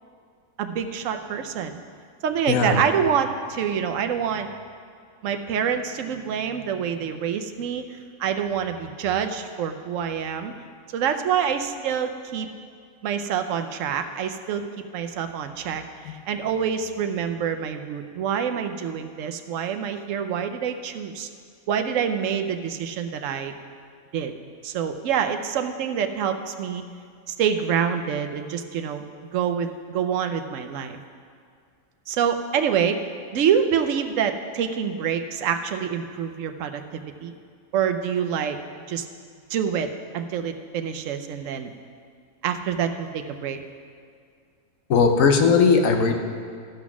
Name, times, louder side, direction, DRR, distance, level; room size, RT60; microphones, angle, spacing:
voice 1, 0.6-1.8 2.2-4.5 5.2-10.5 10.9-12.5 13.0-14.6 14.9-21.3 21.7-23.5 24.1-24.3 24.6-26.8 27.3-29.0 29.3-31.0 32.1-33.0 33.3-37.3 37.7-38.6 38.9-39.1 39.5-39.9 40.1-41.7 42.4-43.6, right 7 dB, 70° right, 7 dB, 1.0 m, -26 dB
voice 2, 2.5-2.8 44.9-46.1, left 5 dB, 70° left, 4 dB, 1.2 m, -18 dB
13.0 x 6.2 x 6.0 m, 2.1 s
omnidirectional pair, 1.5 m